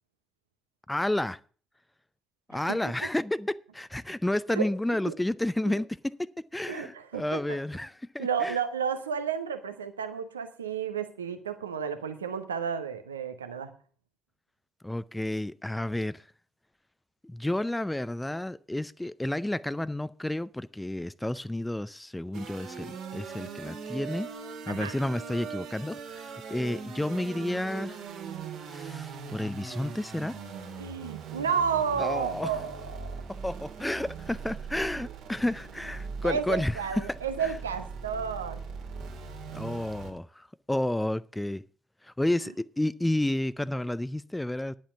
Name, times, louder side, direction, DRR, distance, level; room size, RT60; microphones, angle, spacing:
voice 1, 0.9-1.4 2.5-8.6 14.8-16.2 17.2-24.3 24.7-28.0 28.7-30.4 32.0-32.6 33.3-37.5 39.5-41.6 42.0-44.7, left 1 dB, 10° left, 0.5 m, -31 dB
voice 2, 6.7-7.6 8.2-13.7 24.7-24.9 30.8-33.1 36.2-38.6, right 7 dB, 85° right, 0.8 m, -32 dB
sound 1, 22.3-40.1, right 5 dB, 65° right, 2.0 m, -40 dB
10.5 x 7.5 x 7.0 m
figure-of-eight pair, 40°, 0 cm